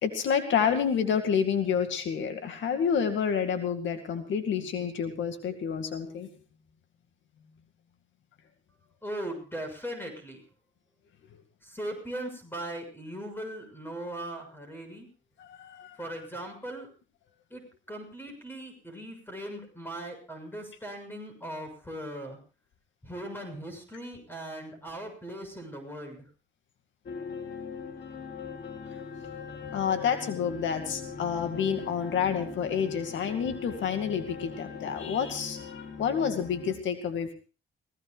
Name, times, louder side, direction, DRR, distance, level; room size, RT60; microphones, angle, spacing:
voice 1, 0.0-6.3 15.4-16.0 29.7-37.3, left 7 dB, 70° left, 7 dB, 2.2 m, -29 dB
voice 2, 9.0-10.4 11.6-15.1 16.0-16.9 17.5-17.6 17.9-22.4 23.0-26.2, right 1 dB, 10° left, 5 dB, 6.6 m, -39 dB
sound 1, 27.1-36.8, left 6 dB, 55° left, 4.5 m, -41 dB
29.5 x 17.5 x 2.5 m, 0.35 s
cardioid pair, 90°, 20 cm